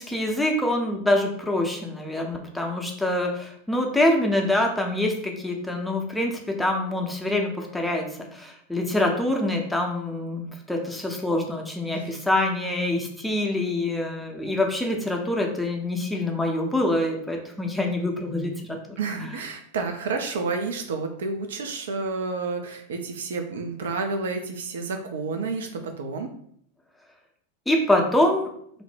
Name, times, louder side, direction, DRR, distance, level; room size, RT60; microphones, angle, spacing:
voice 1, 0.0-8.0 8.3-18.8 19.3-19.4 27.7-28.5, left 1 dB, 5° left, 1 dB, 0.5 m, -25 dB
voice 2, 19.0-26.3, right 4 dB, 60° right, 5 dB, 0.3 m, -30 dB
2.5 x 2.0 x 3.3 m, 0.66 s
figure-of-eight pair, 90°, 0 cm